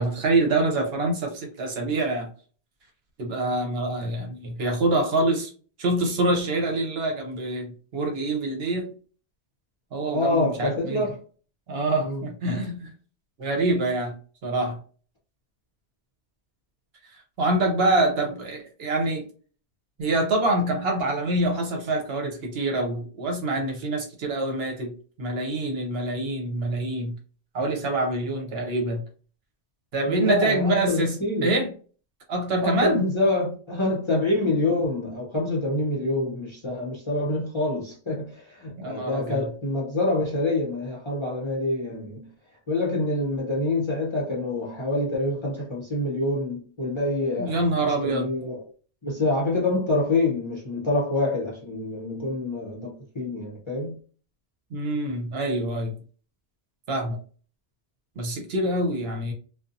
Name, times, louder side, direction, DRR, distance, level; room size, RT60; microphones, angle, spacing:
voice 1, 0.0-2.3 3.2-5.5 5.8-8.9 9.9-11.0 11.7-12.9 13.4-14.2 14.4-14.8 17.4-19.2 20.0-27.1 27.5-29.0 29.9-31.7 32.3-33.2 38.8-39.4 47.4-48.3 54.7-55.9 56.9-57.2 58.2-59.3, right 2 dB, 65° right, 0.9 m, -26 dB
voice 2, 10.1-11.2 12.0-12.2 30.1-31.5 32.6-42.3 42.7-48.6 49.0-53.9, left 2 dB, 30° left, 0.6 m, -26 dB
2.6 x 2.2 x 2.5 m
omnidirectional pair, 1.2 m